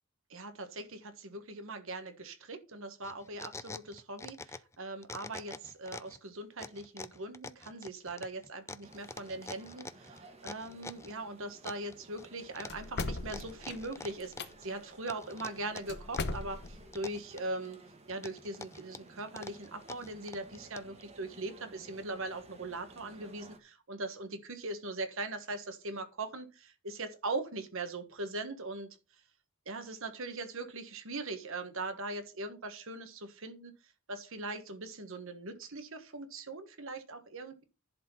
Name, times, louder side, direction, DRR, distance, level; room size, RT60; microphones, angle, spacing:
voice 1, 0.3-17.8 18.1-28.9 29.7-33.7 34.1-37.6, right 2 dB, 65° right, 9 dB, 1.4 m, -40 dB
sound 1, 3.0-4.8 5.0-6.2 6.6-11.1 11.6-12.3 12.6-14.7 15.1-16.4 16.7-17.7 18.1-21.0, left 3 dB, 15° left, 0.4 m, -46 dB
sound 2, 8.8-23.6, right 2 dB, 30° right, 1.5 m, -56 dB
sound 3, 12.7-14.5 15.9-16.9, left 3 dB, 50° left, 0.9 m, -38 dB
11.0 x 4.3 x 5.6 m, 0.32 s
head